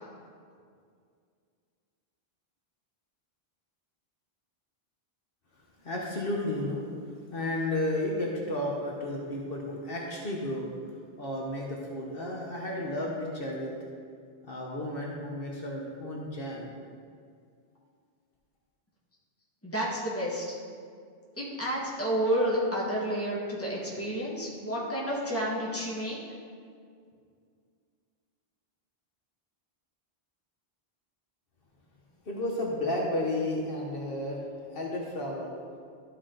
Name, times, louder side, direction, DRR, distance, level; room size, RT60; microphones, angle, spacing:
voice 1, 5.6-6.8 7.1-10.7 11.2-13.8 14.4-16.7 32.2-34.4 34.7-35.5, left 1 dB, 65° left, -2 dB, 1.2 m, -32 dB
voice 2, 19.6-20.5 21.3-26.2, equal, 15° left, -5 dB, 1.5 m, -30 dB
12.5 x 4.8 x 3.8 m, 2.2 s
omnidirectional pair, 1.0 m